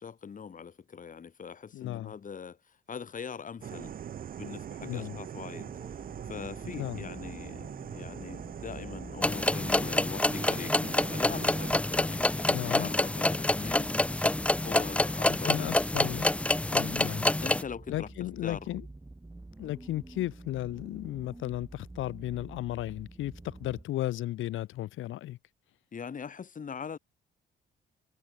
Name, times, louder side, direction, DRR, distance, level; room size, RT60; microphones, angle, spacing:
voice 1, 0.0-2.6 2.9-3.9 4.4-5.7 6.3-13.9 14.6-16.1 17.4-18.1 18.4-18.6 25.9-27.0, left 6 dB, 40° left, 2.6 m, -42 dB
voice 2, 1.7-2.1 4.8-5.2 6.6-7.1 12.5-12.9 15.2-17.3 17.9-18.9 19.6-25.4, left 14 dB, 85° left, 1.7 m, -35 dB
sound 1, 3.6-11.8, right 9 dB, 45° right, 0.7 m, -42 dB
sound 2, 5.7-23.8, right 2 dB, 15° right, 3.0 m, -48 dB
sound 3, 9.2-17.6, left 2 dB, 5° left, 0.4 m, -27 dB
cardioid pair, 90°, 20 cm